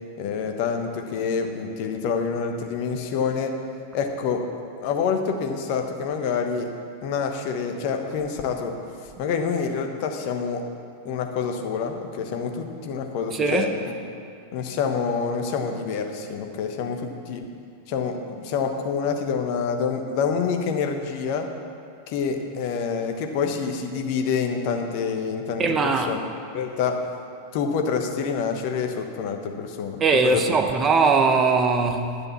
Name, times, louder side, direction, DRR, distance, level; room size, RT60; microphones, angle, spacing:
voice 1, 0.2-3.5 3.9-4.4 4.8-6.7 7.0-8.7 9.2-10.6 11.0-13.9 14.5-17.4 17.9-21.4 22.1-26.2 26.5-27.0 27.5-30.6, left 6 dB, 45° left, 1.1 m, -27 dB
voice 2, 13.3-13.7 25.6-26.1 30.0-32.2, right 4 dB, 25° right, 0.9 m, -20 dB
10.5 x 6.9 x 7.2 m
figure-of-eight pair, 90°, 0 cm